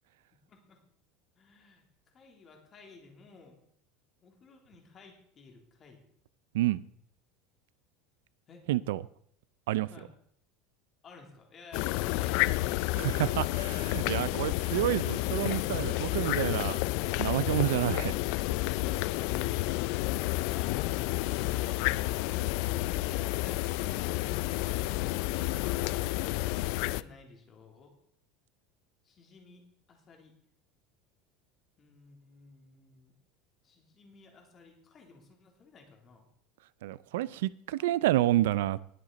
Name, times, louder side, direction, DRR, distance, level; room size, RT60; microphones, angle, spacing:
voice 1, 0.5-0.8 1.4-1.9 2.1-3.6 4.2-6.0 8.5-8.6 9.9-10.1 11.0-12.5 18.8-20.2 20.5-24.1 26.2-27.9 29.0-29.6 29.9-30.3 31.8-33.1 33.6-36.3, left 4 dB, 30° left, 3.2 m, -54 dB
voice 2, 8.7-9.0 9.7-9.9 12.9-16.8 17.2-18.1 36.8-38.8, right 15 dB, 85° right, 0.5 m, -29 dB
sound 1, 11.7-27.0, left 19 dB, 65° left, 0.4 m, -30 dB
19.5 x 7.6 x 4.1 m
supercardioid pair, 135°, 0 cm